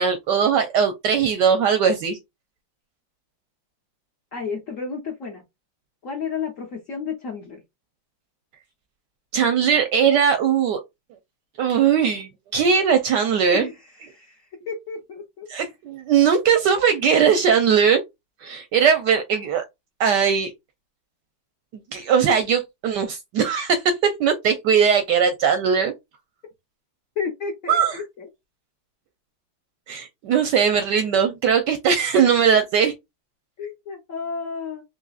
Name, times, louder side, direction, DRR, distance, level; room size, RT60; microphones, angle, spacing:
voice 1, 0.0-2.2 9.3-10.8 11.6-13.7 15.5-18.0 18.4-19.6 20.0-20.5 21.9-25.9 27.7-28.0 29.9-32.9, right 7 dB, 75° right, 1.0 m, -19 dB
voice 2, 4.3-5.4 6.0-7.6 13.5-15.5 27.2-28.3 33.6-34.8, left 5 dB, 55° left, 0.9 m, -32 dB
4.0 x 2.9 x 2.3 m
omnidirectional pair, 2.3 m